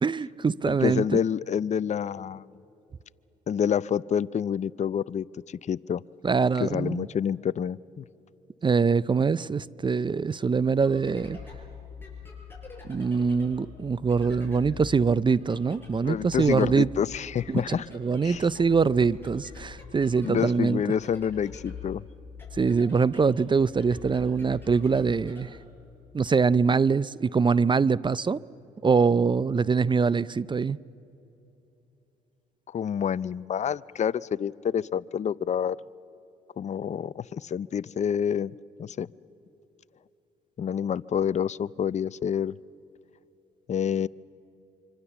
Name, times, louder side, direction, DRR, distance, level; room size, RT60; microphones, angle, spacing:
voice 1, 0.0-1.2 6.2-7.1 8.6-11.4 12.9-16.9 17.5-20.8 22.6-25.6 26.1-28.4 28.8-30.8, right 5 dB, 25° right, 0.5 m, -24 dB
voice 2, 0.7-2.5 3.5-6.0 6.6-8.0 16.0-17.9 18.2-18.4 20.2-22.0 32.7-35.8 36.6-39.1 40.6-42.6 43.7-44.1, left 8 dB, 40° left, 0.5 m, -28 dB
sound 1, 10.6-26.3, left 5 dB, 10° left, 7.6 m, -45 dB
25.5 x 25.0 x 7.1 m
supercardioid pair, 65°, 18 cm